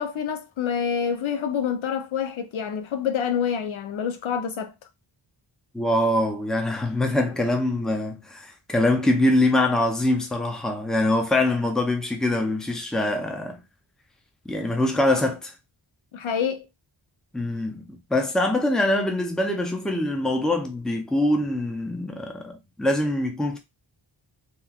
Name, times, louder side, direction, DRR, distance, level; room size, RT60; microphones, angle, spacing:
voice 1, 0.0-4.7 16.1-16.7, left 7 dB, 80° left, 0.6 m, -27 dB
voice 2, 5.7-13.6 14.5-15.5 17.3-23.6, left 1 dB, ahead, 0.5 m, -24 dB
3.0 x 2.3 x 2.3 m
wide cardioid pair, 85°, 47 cm